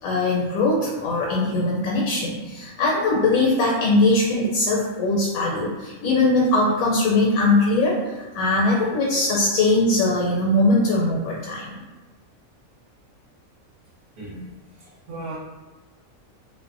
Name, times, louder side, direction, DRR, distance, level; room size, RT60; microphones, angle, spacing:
voice 1, 0.0-11.7, left 2 dB, 75° left, -4 dB, 1.0 m, -21 dB
voice 2, 14.2-15.4, right 2 dB, 60° right, -5 dB, 1.0 m, -37 dB
2.6 x 2.1 x 2.4 m, 1.2 s
omnidirectional pair, 1.5 m